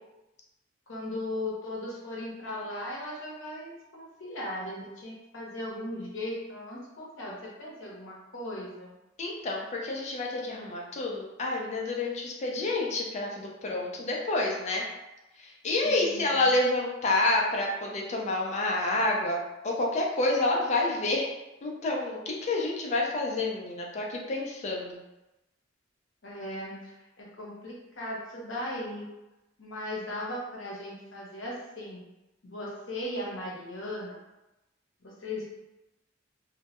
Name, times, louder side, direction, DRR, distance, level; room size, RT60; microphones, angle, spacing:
voice 1, 0.9-8.9 15.8-16.3 26.2-29.1 29.6-32.1 32.4-34.2 35.0-35.6, left 1 dB, 75° left, -4 dB, 0.7 m, -37 dB
voice 2, 9.2-14.8 15.4-19.4 19.6-21.3 21.6-25.0, left 2 dB, 35° left, -1 dB, 0.4 m, -28 dB
2.1 x 2.0 x 2.8 m, 0.97 s
head